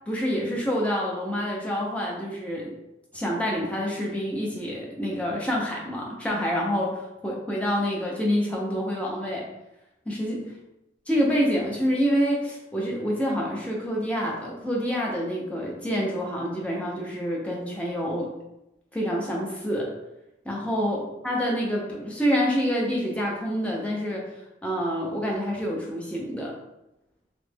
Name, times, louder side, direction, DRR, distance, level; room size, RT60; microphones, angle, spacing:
voice 1, 0.1-2.7 3.1-9.5 10.1-10.4 11.1-18.3 18.9-19.9 20.4-24.3 24.6-26.5, equal, 5° left, -3 dB, 0.5 m, -27 dB
3.0 x 2.0 x 3.4 m, 0.91 s
head